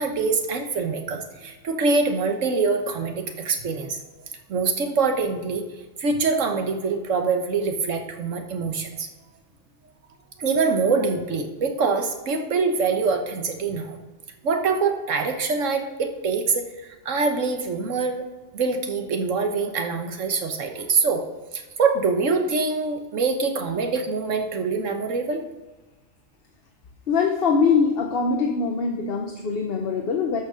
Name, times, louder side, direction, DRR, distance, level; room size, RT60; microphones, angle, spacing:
voice 1, 0.0-4.0 4.5-5.6 6.0-9.1 10.4-14.0 14.4-18.2 18.5-21.3 21.5-25.4, right 4 dB, 70° right, 5 dB, 1.4 m, -24 dB
voice 2, 27.1-30.4, left 5 dB, 50° left, 2 dB, 1.0 m, -22 dB
12.5 x 6.1 x 5.1 m, 1.2 s
omnidirectional pair, 1.4 m